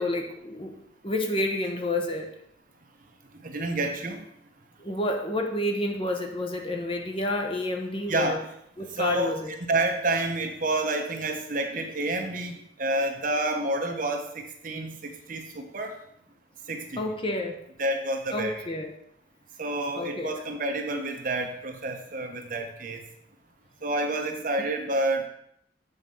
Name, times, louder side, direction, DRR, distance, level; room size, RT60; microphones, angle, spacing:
voice 1, 0.0-2.3 4.8-8.4 8.8-9.5 17.0-17.6 18.3-18.9 19.9-20.3, left 1 dB, 30° left, 3 dB, 1.0 m, -29 dB
voice 2, 3.4-4.2 8.1-8.4 8.9-9.3 9.7-15.9 16.7-17.1 17.8-18.7 19.6-23.0 23.8-25.3, right 2 dB, 50° right, 4 dB, 1.0 m, -29 dB
8.1 x 4.5 x 5.5 m, 0.73 s
head